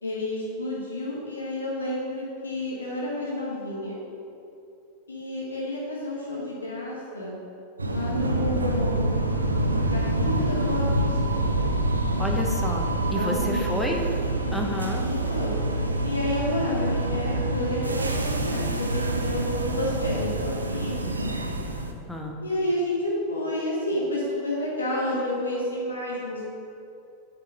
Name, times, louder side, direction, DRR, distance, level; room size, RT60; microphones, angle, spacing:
voice 1, 0.0-4.0 5.1-7.4 7.8-9.0 9.9-11.5 13.1-13.9 15.0-15.6 16.0-21.0 22.4-26.5, left 1 dB, 75° left, -5 dB, 1.5 m, -30 dB
sound 1, 7.8-21.9, right 1 dB, 80° right, 0.6 m, -26 dB
voice 2, 12.2-14.0 14.5-15.0 22.1-22.4, left 1 dB, 5° left, 0 dB, 1.1 m, -30 dB
8.6 x 6.1 x 4.5 m, 2.6 s
figure-of-eight pair, 90°, 0 cm